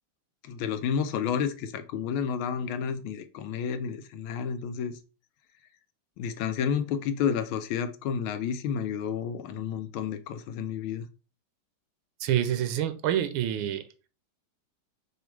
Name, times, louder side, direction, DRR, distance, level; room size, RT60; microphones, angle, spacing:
voice 1, 0.4-4.9 6.2-11.1, left 7 dB, 85° left, 1.5 m, -30 dB
voice 2, 12.2-13.8, right 11 dB, 85° right, 1.4 m, -27 dB
5.1 x 2.3 x 4.5 m
omnidirectional pair, 2.2 m